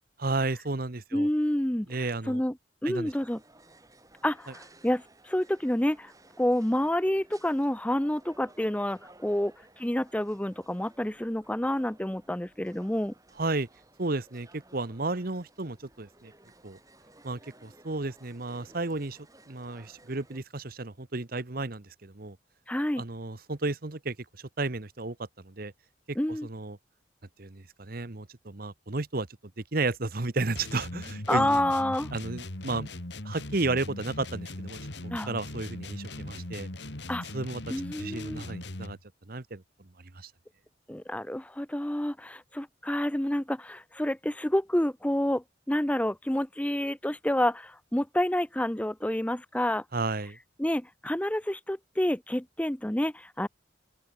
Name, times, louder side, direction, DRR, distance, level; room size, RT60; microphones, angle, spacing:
voice 1, 0.2-1.3 1.9-2.4 2.8-3.1 13.4-13.7 14.0-16.3 16.6-16.8 17.2-19.2 19.5-22.4 23.0-25.2 25.4-25.7 26.4-26.8 27.4-29.3 29.7-31.6 32.1-32.9 33.2-36.7 37.3-37.6 38.0-39.0 39.3-39.6 40.1-40.3 49.9-50.4, right 3 dB, 50° right, 1.2 m, -33 dB
voice 2, 1.1-2.5 2.8-3.4 4.2-6.1 6.4-13.1 22.7-23.0 26.2-26.5 31.3-32.1 35.1-35.3 37.1-37.2 37.7-38.4 40.9-49.8 50.6-53.5, left 1 dB, 5° left, 0.7 m, -29 dB
sound 1, 3.1-20.4, right 2 dB, 20° right, 5.6 m, -57 dB
sound 2, 30.6-39.0, left 1 dB, 65° left, 2.7 m, -40 dB
open air
head